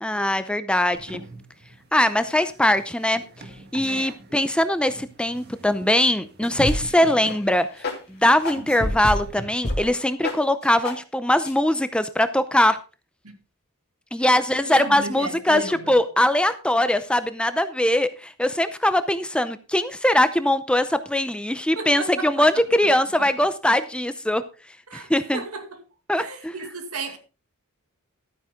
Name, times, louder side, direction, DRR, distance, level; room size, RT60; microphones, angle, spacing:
voice 1, 0.0-1.2 1.9-3.2 3.7-7.7 8.1-12.8 14.1-24.4 24.9-25.4 26.1-26.5, left 1 dB, 5° left, 0.6 m, -21 dB
sound 1, 0.9-9.5, right 2 dB, 45° right, 1.9 m, -41 dB
voice 2, 3.8-4.2 13.2-13.4 14.2-16.0 21.8-22.9 23.2-23.3 24.9-25.8 26.1-27.2, right 3 dB, 80° right, 2.3 m, -35 dB
sound 2, 6.4-7.0 7.3-7.4 7.8-8.0 8.5-9.2 9.6-9.8 10.2-10.4 10.9-11.0 11.5-11.6, left 1 dB, 45° left, 2.7 m, -26 dB
12.5 x 9.4 x 3.7 m
head